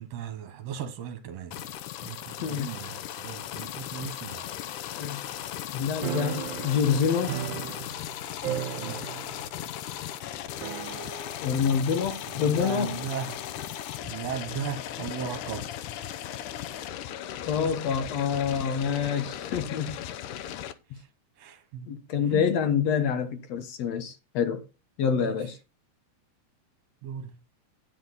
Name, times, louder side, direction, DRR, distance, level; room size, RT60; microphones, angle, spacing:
voice 1, 0.0-1.7 2.0-4.5 8.8-9.0 12.3-13.5 14.0-15.7 20.9-21.1 21.4-22.5 25.2-25.5 27.0-27.4, right 8 dB, 65° right, 2.1 m, -37 dB
sound 1, 1.5-20.7, left 11 dB, 85° left, 2.3 m, -37 dB
voice 2, 2.4-2.8 5.0-5.3 5.7-7.3 11.4-13.0 17.4-20.0 21.9-24.7 25.0-25.6, left 7 dB, 65° left, 2.2 m, -27 dB
sound 2, 6.0-8.2 8.4-9.4 9.7-9.8 10.6-11.4, right 13 dB, 80° right, 2.0 m, -35 dB
10.0 x 7.7 x 4.1 m
omnidirectional pair, 3.5 m